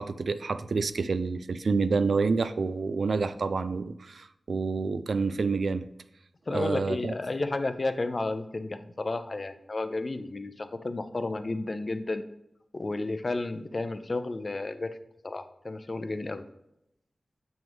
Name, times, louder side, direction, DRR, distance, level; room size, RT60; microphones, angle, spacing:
voice 1, 0.0-5.9 6.5-7.1, right 4 dB, 80° right, 12 dB, 0.3 m, -28 dB
voice 2, 6.5-12.2 12.7-15.0 15.2-16.4, left 2 dB, 45° left, 10 dB, 0.5 m, -32 dB
7.4 x 6.0 x 3.5 m, 0.83 s
wide cardioid pair, 95°, 0 cm